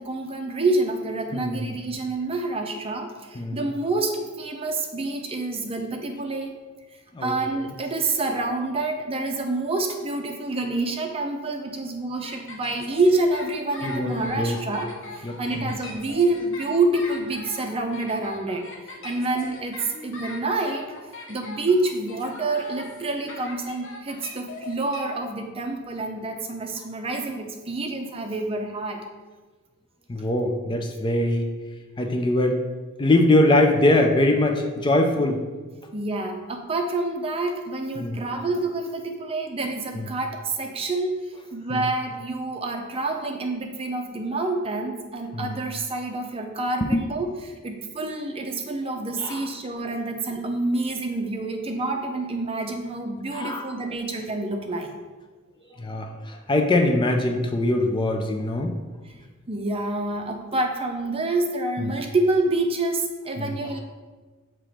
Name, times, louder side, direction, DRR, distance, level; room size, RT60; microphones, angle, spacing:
voice 1, 0.0-6.5 7.2-18.7 19.0-20.9 21.3-29.1 35.9-41.1 41.5-47.3 47.6-54.9 59.5-63.8, right 2 dB, 25° right, 4 dB, 0.6 m, -27 dB
voice 2, 1.3-1.8 3.3-3.7 7.1-7.4 13.8-14.6 15.2-15.7 30.1-31.5 32.0-32.6 33.0-35.4 38.0-38.2 39.9-40.1 41.7-41.9 45.3-45.5 46.8-47.1 49.2-49.5 53.3-53.8 55.7-58.7 61.8-61.9 63.4-63.8, left 1 dB, 20° left, 4 dB, 0.4 m, -23 dB
sound 1, 12.2-25.0, left 2 dB, 60° left, 1.1 m, -40 dB
7.2 x 3.0 x 4.9 m, 1.3 s
head